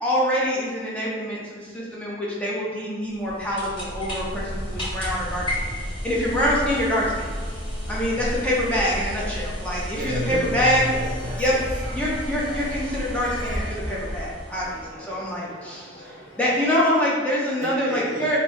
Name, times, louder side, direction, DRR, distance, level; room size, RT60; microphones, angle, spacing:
voice 1, 0.0-5.7 6.0-7.3 7.9-10.8 11.4-11.5 11.9-15.9 16.4-18.4, equal, 5° left, -6 dB, 0.6 m, -25 dB
sound 1, 3.1-14.9, equal, 25° left, 1.1 m, -32 dB
sound 2, 4.2-13.8, equal, 45° left, 1.2 m, -45 dB
voice 2, 8.1-8.5 9.9-12.3 17.6-18.4, right 1 dB, 40° right, -2 dB, 0.6 m, -32 dB
sound 3, 10.4-16.7, equal, 75° left, 1.2 m, -45 dB
3.0 x 2.7 x 4.4 m, 1.5 s
head